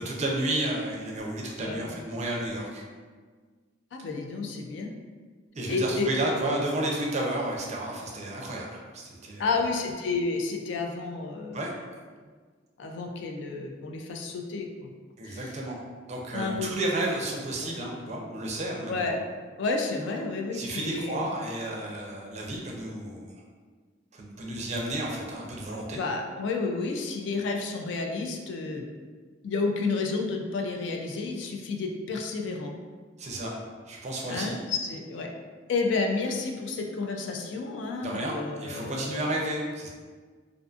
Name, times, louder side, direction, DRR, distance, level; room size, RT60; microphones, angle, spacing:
voice 1, 0.0-2.8 5.5-9.5 11.5-11.7 15.2-15.8 16.1-19.1 20.5-23.3 24.1-26.0 33.2-33.5 33.9-34.5 38.0-39.9, right 1 dB, 40° right, -1 dB, 0.4 m, -32 dB
voice 2, 3.9-5.0 5.7-6.1 9.4-11.7 12.8-14.9 15.2-15.5 16.3-16.8 17.6-17.7 18.9-19.1 19.6-21.3 25.9-28.8 29.4-32.7 34.3-35.3 35.7-39.4, left 4 dB, 70° left, 2 dB, 0.3 m, -31 dB
2.5 x 2.4 x 2.4 m, 1.5 s
head